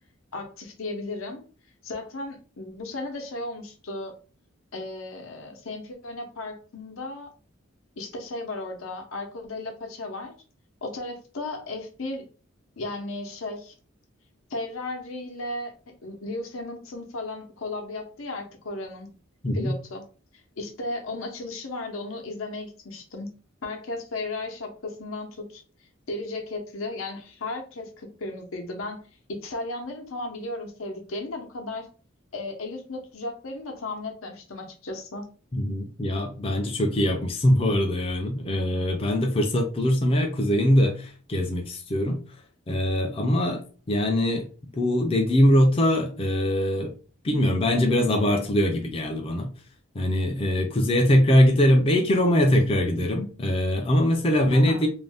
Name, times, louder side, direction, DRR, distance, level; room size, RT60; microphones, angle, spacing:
voice 1, 0.3-1.4 1.8-4.1 4.7-7.3 8.0-10.3 10.8-12.2 12.8-13.7 14.5-15.7 16.0-19.1 19.5-20.0 20.6-23.3 23.6-25.6 26.1-29.0 29.3-31.9 32.3-35.2 54.5-54.9, left 2 dB, 85° left, 3 dB, 0.7 m, -35 dB
voice 2, 35.5-42.2 42.7-43.6 43.9-44.5 44.7-46.9 47.2-49.5 49.9-54.9, left 1 dB, 25° left, 2 dB, 0.4 m, -22 dB
2.6 x 2.1 x 3.3 m, 0.38 s
head